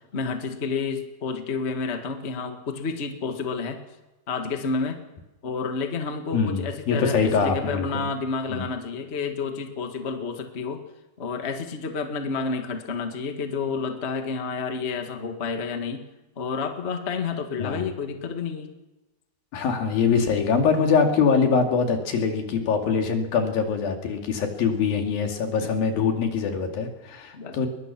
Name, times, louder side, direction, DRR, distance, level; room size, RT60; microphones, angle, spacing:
voice 1, 0.1-3.8 4.3-5.0 5.4-10.8 11.2-16.0 16.4-18.7 25.6-25.7 27.3-27.6, left 4 dB, 90° left, 5 dB, 0.5 m, -30 dB
voice 2, 6.3-8.0 8.5-8.7 17.6-17.9 19.5-27.7, left 5 dB, 65° left, 3 dB, 4.1 m, -23 dB
21.5 x 21.5 x 6.0 m, 1.1 s
omnidirectional pair, 4.5 m